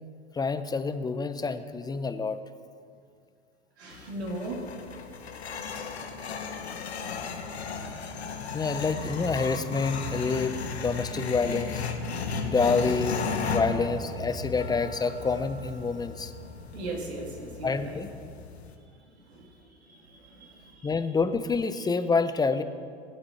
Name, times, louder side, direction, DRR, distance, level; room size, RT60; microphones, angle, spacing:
voice 1, 0.3-2.4 7.8-7.9 8.5-11.8 12.4-13.2 13.5-16.3 17.6-18.1 20.8-22.6, left 4 dB, 10° left, 11 dB, 0.7 m, -27 dB
voice 2, 3.8-4.7 16.7-18.0 19.1-19.5 19.8-20.9, right 2 dB, 80° right, -1 dB, 2.5 m, -38 dB
sound 1, 3.9-18.7, left 4 dB, 90° left, 1.3 m, -35 dB
19.5 x 7.8 x 4.3 m, 2.2 s
hypercardioid pair, 90°, 31 cm